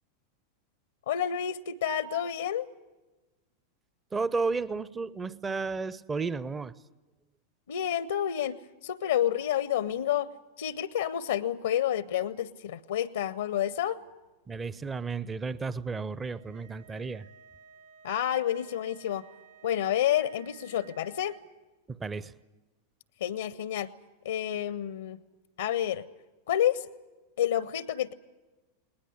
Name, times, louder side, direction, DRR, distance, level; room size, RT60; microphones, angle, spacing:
voice 1, 1.1-2.7 7.7-10.3 10.6-14.0 18.0-19.3 19.6-21.4 23.2-23.9 24.2-25.2 25.6-26.0 26.5-26.9 27.4-28.1, left 10 dB, 65° left, 0.7 m, -29 dB
voice 2, 4.1-6.7 14.5-17.2 22.0-22.3, right 4 dB, 15° right, 0.7 m, -33 dB
sound 1, 16.3-21.4, right 8 dB, 70° right, 3.7 m, -55 dB
20.0 x 19.5 x 9.8 m
figure-of-eight pair, 90°, 0 cm